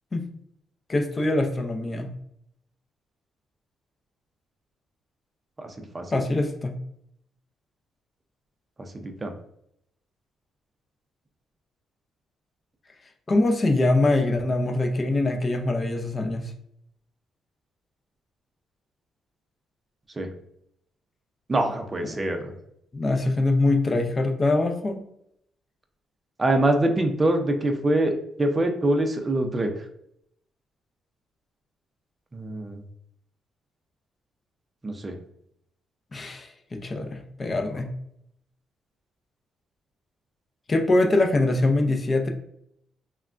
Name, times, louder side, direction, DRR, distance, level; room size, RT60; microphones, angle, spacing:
voice 1, 0.9-2.1 6.1-6.8 13.3-16.4 22.9-25.0 36.1-37.9 40.7-42.3, left 2 dB, 30° left, 4 dB, 0.5 m, -23 dB
voice 2, 5.6-6.2 8.9-9.3 20.2-20.3 21.5-22.5 26.4-28.1 28.4-29.7 32.3-32.8 34.8-35.1, right 1 dB, 25° right, 5 dB, 0.5 m, -24 dB
3.4 x 2.2 x 2.4 m, 0.74 s
cardioid pair, 90°, 0 cm